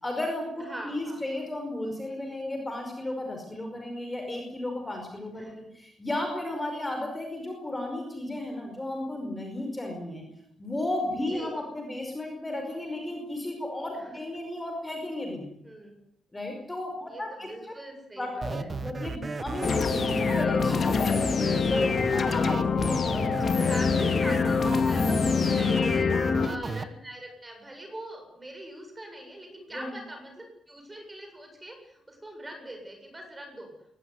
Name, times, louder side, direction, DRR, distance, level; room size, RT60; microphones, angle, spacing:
voice 1, 0.0-10.3 10.6-15.6 16.3-17.7 18.2-23.8 26.2-26.7 29.7-30.0, left 1 dB, 10° left, 3 dB, 5.2 m, -34 dB
voice 2, 0.6-1.2 5.3-5.6 11.3-11.5 13.9-14.1 15.6-16.0 17.1-18.7 23.6-33.7, right 1 dB, 15° right, 4 dB, 7.8 m, -42 dB
sound 1, 18.4-26.8, right 4 dB, 30° right, 1.4 m, -34 dB
sound 2, 19.6-26.5, left 5 dB, 40° left, 2.6 m, -25 dB
22.0 x 20.0 x 9.8 m, 0.76 s
wide cardioid pair, 160°, 0 cm